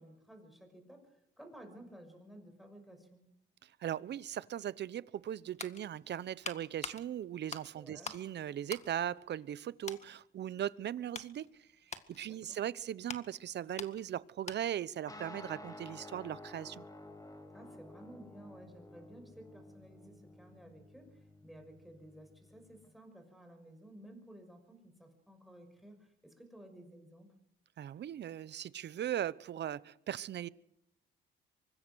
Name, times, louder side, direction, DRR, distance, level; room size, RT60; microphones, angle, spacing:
voice 1, 0.0-3.2 7.7-8.1 12.2-12.6 17.5-27.3, right 1 dB, ahead, 6 dB, 6.0 m, -55 dB
voice 2, 3.8-11.5 12.2-16.8 27.8-30.5, right 10 dB, 60° right, 18 dB, 0.9 m, -39 dB
sound 1, 5.2-8.3 8.6-9.6 9.8-10.1 10.6-14.9 15.2-15.3, left 4 dB, 35° left, 1.9 m, -46 dB
sound 2, 15.1-22.9, left 1 dB, 20° left, 3.1 m, -52 dB
24.5 x 20.5 x 6.3 m, 0.81 s
cardioid pair, 90°, 20 cm